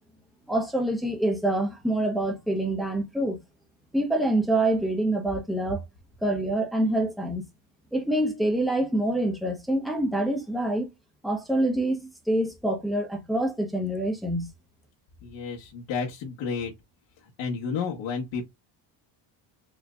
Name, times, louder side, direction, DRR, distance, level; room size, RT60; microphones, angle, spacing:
voice 1, 0.5-3.4 3.9-5.8 6.2-7.4 7.9-10.9 11.2-14.5, right 1 dB, ahead, 1.1 m, -26 dB
voice 2, 15.2-16.7 17.4-18.4, left 5 dB, 70° left, 1.6 m, -31 dB
4.9 x 3.2 x 2.5 m
cardioid pair, 130°, 45 cm